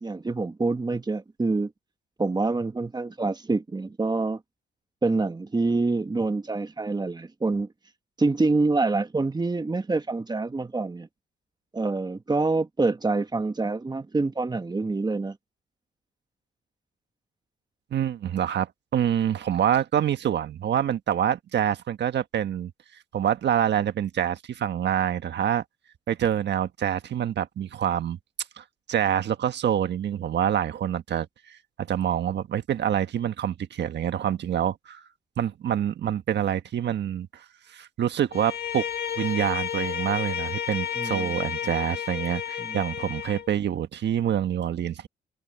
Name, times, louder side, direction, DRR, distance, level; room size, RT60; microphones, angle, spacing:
voice 1, 0.0-1.7 2.2-4.4 5.0-7.7 8.2-11.1 11.7-15.4 41.0-41.3 42.6-42.8, right 3 dB, 20° right, 1.5 m, -26 dB
voice 2, 17.9-22.7 23.1-25.6 26.1-28.2 28.6-35.1 35.4-38.9 39.2-45.1, right 9 dB, 60° right, 1.5 m, -26 dB
Bowed string instrument, 38.3-43.5, left 9 dB, 55° left, 2.0 m, -32 dB
cardioid pair, 90°, 20 cm